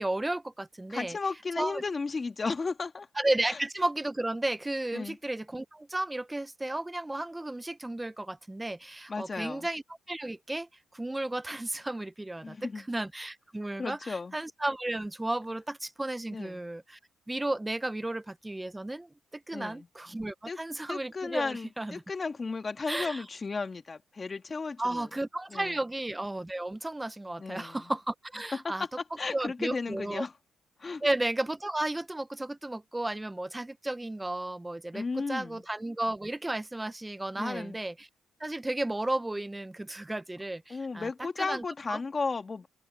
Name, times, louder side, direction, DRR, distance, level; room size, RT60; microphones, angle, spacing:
voice 1, 0.0-1.2 1.6-1.8 3.2-17.0 17.3-22.0 22.9-23.2 24.8-28.8 29.3-30.2 31.0-38.1 38.4-41.1 41.4-41.6 41.9-42.0, right 1 dB, 10° right, 0.8 m, -33 dB
voice 2, 0.9-3.1 3.4-3.6 4.9-5.2 9.1-9.7 12.4-12.9 13.8-14.3 16.3-16.6 19.5-19.9 20.5-20.6 20.9-25.1 25.5-25.7 27.4-27.9 29.2-30.3 30.8-31.0 34.9-35.6 37.4-37.8 40.7-42.7, left 4 dB, 30° left, 2.4 m, -34 dB
open air
cardioid pair, 90°, 0 cm